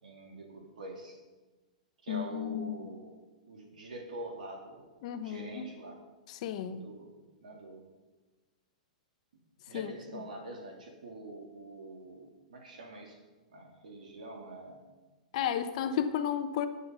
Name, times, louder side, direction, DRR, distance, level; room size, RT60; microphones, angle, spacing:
voice 1, 0.0-1.2 2.0-3.2 3.4-4.8 5.2-6.0 6.7-7.1 7.4-7.8 9.7-13.2 13.5-14.8, right 1 dB, 80° right, 1 dB, 3.4 m, -45 dB
voice 2, 2.1-2.8 5.0-5.6 6.3-6.9 9.7-9.9 15.3-16.7, left 9 dB, 55° left, 9 dB, 1.1 m, -33 dB
19.5 x 6.8 x 5.6 m, 1.2 s
hypercardioid pair, 125°, 4 cm